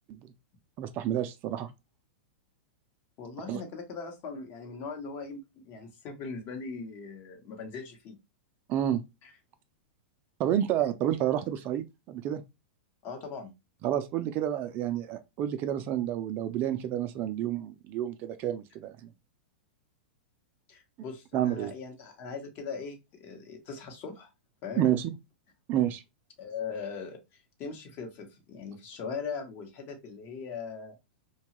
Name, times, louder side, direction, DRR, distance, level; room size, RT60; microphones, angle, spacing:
voice 1, 0.8-1.7 3.5-3.6 8.7-9.0 10.4-12.4 13.8-19.1 21.3-21.7 24.8-25.1 25.7-26.0, right 11 dB, 35° right, 0.3 m, -29 dB
voice 2, 3.2-8.2 9.2-9.3 13.0-13.5 20.7-24.3 24.6-24.9 26.4-30.9, left 5 dB, 40° left, 0.9 m, -40 dB
2.8 x 2.3 x 2.8 m
hypercardioid pair, 135°, 6 cm